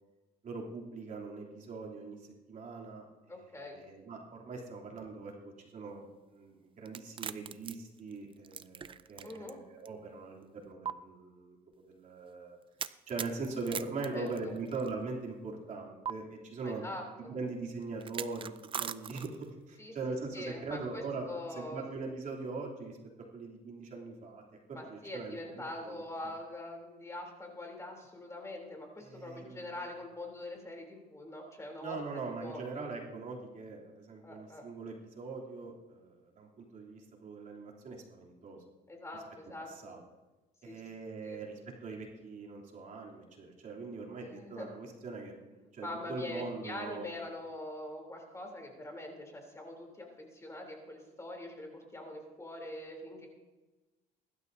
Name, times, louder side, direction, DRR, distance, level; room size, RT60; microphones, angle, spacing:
voice 1, 0.4-3.1 3.5-5.3 5.6-11.6 11.9-12.6 13.1-16.8 17.2-19.4 19.7-21.3 21.6-23.0 23.3-24.4 24.7-26.0 29.0-29.8 31.8-38.6 39.8-40.0 40.6-41.5 41.8-47.0, right 3 dB, 45° right, -1 dB, 3.2 m, -41 dB
voice 2, 3.3-3.8 9.2-9.6 14.1-14.5 16.6-17.4 19.8-20.0 20.3-21.8 24.7-32.0 32.4-32.6 34.2-34.6 38.9-40.0 40.7-40.8 41.2-41.4 44.1-44.7 45.8-53.3, left 1 dB, 15° left, 1 dB, 3.3 m, -43 dB
sound 1, 6.9-9.5 9.8-9.9 10.8-10.9 12.8-14.9 16.0-16.1 18.0-19.5, right 8 dB, 30° right, 0.5 m, -40 dB
22.0 x 12.5 x 2.7 m, 1.1 s
cardioid pair, 110°, 17 cm